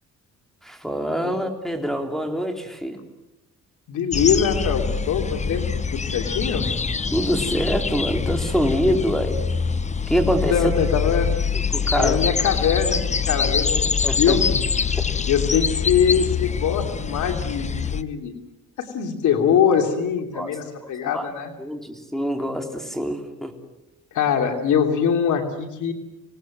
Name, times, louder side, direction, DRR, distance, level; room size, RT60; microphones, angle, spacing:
voice 1, 0.7-3.0 7.1-9.4 10.1-10.5 11.5-12.2 14.0-14.4 20.3-20.5 21.1-21.3 21.6-23.5, equal, ahead, 5 dB, 3.5 m, -25 dB
voice 2, 3.9-6.6 10.2-11.3 11.9-14.6 15.3-18.3 18.8-21.5 24.1-25.9, left 7 dB, 80° left, 4 dB, 3.0 m, -23 dB
sound 1, 4.1-18.0, left 6 dB, 25° left, 0.8 m, -24 dB
26.5 x 18.5 x 7.8 m, 0.94 s
cardioid pair, 90°, 30 cm